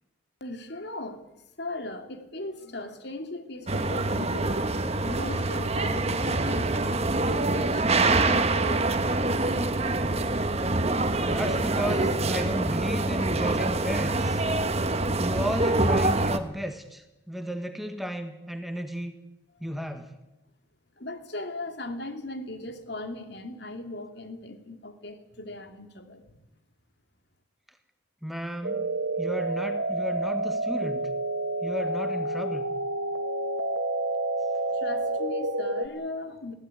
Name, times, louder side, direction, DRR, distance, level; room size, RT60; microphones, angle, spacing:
voice 1, 0.4-4.7 5.0-9.6 19.5-19.6 21.0-26.4 34.7-36.5, left 2 dB, 60° left, 7 dB, 2.7 m, -38 dB
sound 1, 3.7-16.4, right 2 dB, 35° right, 1.4 m, -25 dB
voice 2, 11.3-14.4 15.2-19.1 19.6-20.1 28.2-28.8 29.2-31.0 31.6-32.7, equal, ahead, 7 dB, 1.7 m, -33 dB
sound 2, 28.6-35.9, right 2 dB, 75° right, 2.2 m, -29 dB
21.5 x 16.5 x 9.9 m, 0.96 s
head